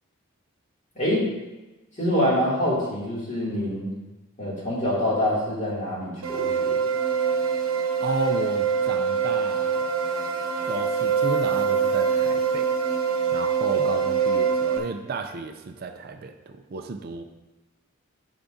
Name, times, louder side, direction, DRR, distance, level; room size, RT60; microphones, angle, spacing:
voice 1, 0.9-1.3 2.0-3.9 4.4-6.9, left 1 dB, 35° left, -6 dB, 2.5 m, -25 dB
sound 1, 6.2-14.8, right 6 dB, 85° right, 0.9 m, -24 dB
voice 2, 8.0-9.9 10.7-12.7 13.3-17.2, right 3 dB, 45° right, 6 dB, 0.4 m, -33 dB
10.0 x 5.9 x 2.6 m, 1.1 s
head